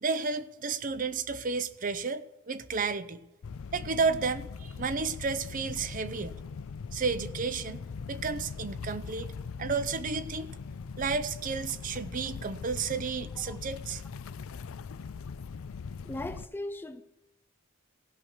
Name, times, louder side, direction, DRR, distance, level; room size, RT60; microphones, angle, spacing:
voice 1, 0.0-3.2 3.7-6.4 6.9-7.8 8.1-9.3 9.6-10.5 11.0-14.0, right 4 dB, 40° right, 0.5 m, -32 dB
sound 1, 3.4-16.5, left 5 dB, 80° left, 0.5 m, -41 dB
voice 2, 16.0-17.0, left 1 dB, 10° left, 0.4 m, -38 dB
16.0 x 5.8 x 6.3 m
head